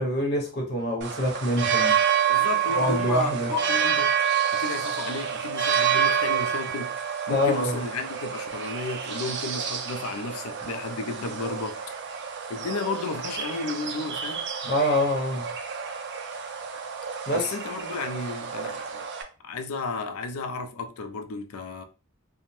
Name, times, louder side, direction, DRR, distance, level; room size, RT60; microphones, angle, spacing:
voice 1, 0.0-2.0 2.7-3.5 7.3-7.8 14.6-15.5 17.3-17.5, left 1 dB, 50° left, 0.8 m, -25 dB
sound 1, 1.0-19.2, right 7 dB, 55° right, 0.4 m, -28 dB
voice 2, 2.3-4.2 4.5-11.8 12.5-14.5 17.3-18.8 19.4-21.8, left 3 dB, 80° left, 0.4 m, -33 dB
2.6 x 2.0 x 3.1 m
head